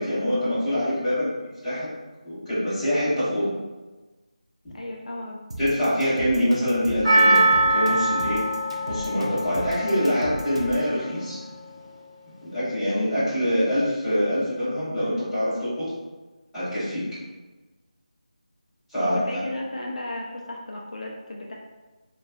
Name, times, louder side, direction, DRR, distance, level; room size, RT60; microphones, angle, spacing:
voice 1, 0.0-1.3 1.6-1.9 2.2-3.5 5.6-8.4 8.9-11.4 12.4-15.9 16.5-17.0 18.9-19.2, equal, 5° left, -19 dB, 0.9 m, -25 dB
voice 2, 4.7-5.4 18.9-21.5, left 1 dB, 65° left, -1 dB, 0.4 m, -34 dB
sound 1, 5.5-10.9, right 1 dB, 50° right, 0.4 m, -36 dB
Percussion, 7.0-11.4 11.7-11.8, right 2 dB, 25° right, 1.1 m, -23 dB
2.6 x 2.2 x 2.2 m, 1.2 s
figure-of-eight pair, 175°, 4 cm